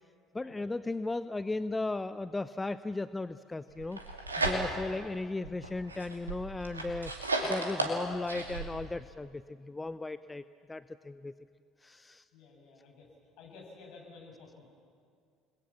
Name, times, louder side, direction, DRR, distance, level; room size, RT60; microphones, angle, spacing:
voice 1, 0.3-4.0 4.4-7.1 7.4-11.3 11.8-12.2, left 2 dB, 15° left, 14 dB, 0.6 m, -36 dB
sound 1, 3.8-5.0 5.4-8.7, right 2 dB, 90° right, 2.4 m, -34 dB
voice 2, 4.7-5.2 7.5-7.7 12.3-13.1 13.4-14.8, left 4 dB, 60° left, 0 dB, 7.5 m, -53 dB
30.0 x 21.0 x 7.3 m, 2.2 s
figure-of-eight pair, 60°, 0 cm